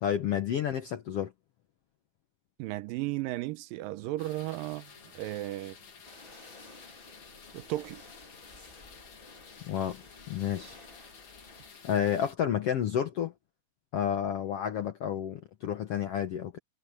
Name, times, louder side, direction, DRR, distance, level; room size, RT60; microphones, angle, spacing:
voice 1, 0.0-1.3 9.6-10.8 11.8-13.3 13.9-16.6, left 9 dB, 75° left, 1.4 m, -30 dB
voice 2, 2.6-5.8 7.5-8.0, right 16 dB, 90° right, 2.4 m, -35 dB
sound 1, 4.2-12.3, left 6 dB, 55° left, 4.2 m, -53 dB
sound 2, 6.0-11.7, left 2 dB, 15° left, 2.7 m, -54 dB
omnidirectional pair, 4.0 m